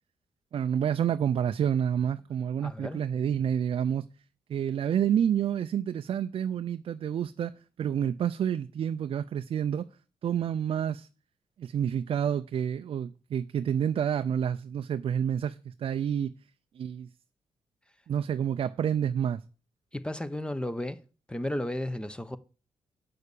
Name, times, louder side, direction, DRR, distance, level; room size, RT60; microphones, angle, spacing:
voice 1, 0.5-4.1 4.5-9.9 10.2-11.1 11.6-16.3 16.7-17.1 18.1-19.4, right 9 dB, 60° right, 0.5 m, -29 dB
voice 2, 2.6-3.0 19.9-21.0 21.3-22.4, left 1 dB, 10° left, 1.1 m, -33 dB
8.6 x 6.5 x 6.8 m
supercardioid pair, 60°, 10 cm